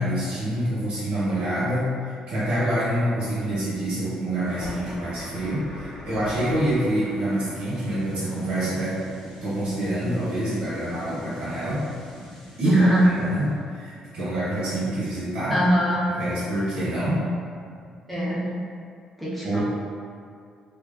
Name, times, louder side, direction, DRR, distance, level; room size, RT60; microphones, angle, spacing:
voice 1, 0.0-1.9 2.3-9.0 9.4-11.8 12.6-15.6 16.1-17.2 19.4-19.6, right 1 dB, 70° right, -11 dB, 1.1 m, -26 dB
sound 1, 4.4-13.5, left 1 dB, 35° left, 0.9 m, -41 dB
voice 2, 12.6-13.1 15.5-16.1 18.1-18.6 19.2-19.6, equal, 5° left, -9 dB, 0.6 m, -22 dB
2.8 x 2.4 x 2.3 m, 2.3 s
cardioid pair, 165°, 2 cm